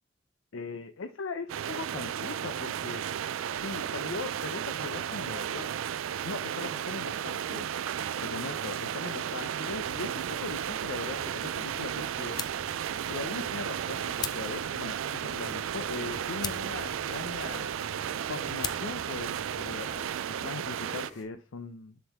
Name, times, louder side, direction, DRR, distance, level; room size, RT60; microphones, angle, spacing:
voice 1, 0.5-3.0 3.6-5.7 6.2-7.7 8.2-12.6 13.1-17.7 18.0-22.0, left 4 dB, 80° left, 9 dB, 0.6 m, -40 dB
sound 1, 1.5-21.1, right 9 dB, 80° right, 0.4 m, -34 dB
sound 2, 3.1-21.2, equal, 40° left, 3.1 m, -57 dB
sound 3, 9.7-20.1, left 6 dB, 20° left, 0.4 m, -44 dB
7.2 x 5.3 x 3.5 m, 0.31 s
head